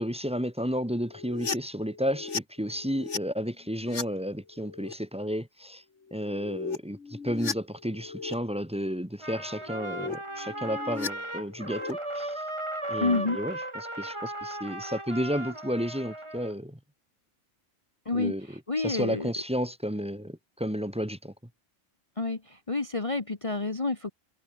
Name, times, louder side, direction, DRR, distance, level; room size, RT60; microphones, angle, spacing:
voice 1, 0.0-5.8 6.1-12.4 12.9-13.6 14.0-16.8 18.1-18.5 18.8-21.3, equal, 5° right, 1.8 m, -32 dB
sound 1, 1.1-3.2 3.6-4.0 4.5-4.9 6.1-8.4 9.5-10.2 10.4-11.9, left 5 dB, 65° left, 2.3 m, -37 dB
Trumpet, 9.2-16.5, right 1 dB, 20° right, 3.3 m, -36 dB
voice 2, 13.0-13.4 18.0-19.3 22.2-24.1, left 3 dB, 25° left, 1.3 m, -29 dB
omnidirectional pair, 1.3 m